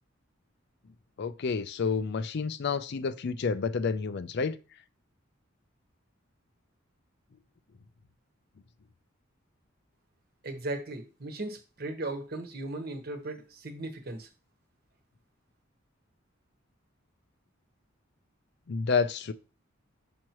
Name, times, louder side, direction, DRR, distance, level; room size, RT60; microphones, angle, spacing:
voice 1, 1.2-4.6 18.7-19.3, left 5 dB, 60° left, 0.5 m, -29 dB
voice 2, 10.4-14.3, right 2 dB, 50° right, 1.2 m, -37 dB
6.2 x 5.8 x 3.0 m
head